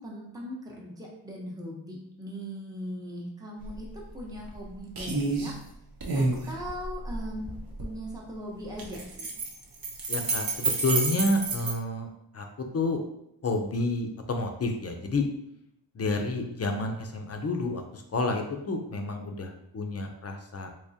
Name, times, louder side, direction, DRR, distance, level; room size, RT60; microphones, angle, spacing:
voice 1, 0.0-3.9 4.1-5.5 6.1-7.5 7.8-9.3, equal, 10° right, -3 dB, 0.8 m, -39 dB
sound 1, 3.6-3.8 4.1-4.6 5.0-5.5 6.0-7.9 8.7-11.7, right 3 dB, 55° right, 0.8 m, -29 dB
voice 2, 10.1-12.1 12.3-13.0 13.4-15.3 15.9-20.7, left 2 dB, 35° left, 4 dB, 0.5 m, -29 dB
3.5 x 3.0 x 2.7 m, 0.79 s
wide cardioid pair, 80°, 43 cm